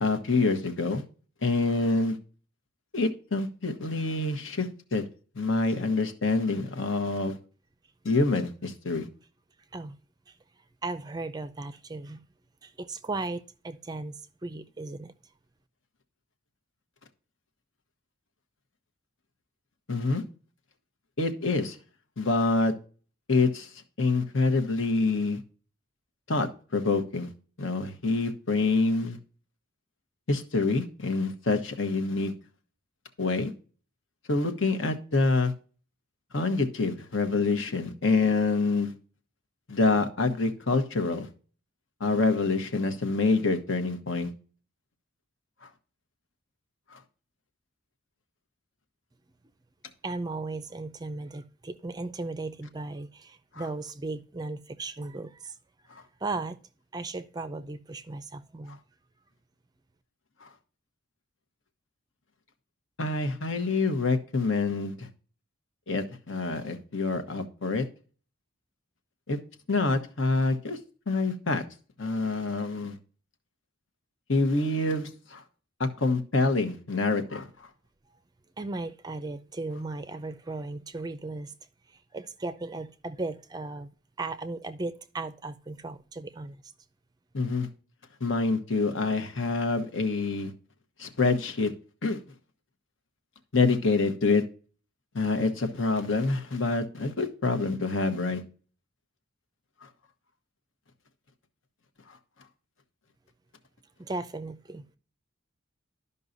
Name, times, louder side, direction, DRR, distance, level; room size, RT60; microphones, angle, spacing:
voice 1, 0.0-1.0 1.4-2.2 2.9-5.0 5.3-7.4 8.0-9.1 19.9-20.2 21.2-21.8 22.2-22.7 23.3-25.4 26.3-26.5 26.7-27.3 27.6-29.2 30.3-32.3 33.2-33.5 34.3-35.5 36.3-38.9 39.7-41.3 42.0-44.3 45.6-45.7 46.9-47.0 53.5-53.6 55.9-56.0 60.4-60.5 63.0-65.1 65.9-67.8 69.3-69.4 69.7-70.8 71.1-71.6 72.0-73.0 74.3-75.4 75.8-77.7 87.3-87.7 88.2-90.5 91.0-91.7 92.0-92.2 93.5-94.4 95.1-98.4 99.8-99.9 102.1-102.2, left 3 dB, 70° left, 1.1 m, -26 dB
voice 2, 10.8-12.2 12.6-15.1 50.0-55.6 56.2-56.6 56.9-58.8 78.6-81.5 81.9-83.9 84.2-86.6 104.0-104.9, right 3 dB, 20° right, 0.4 m, -36 dB
12.5 x 5.5 x 2.6 m
head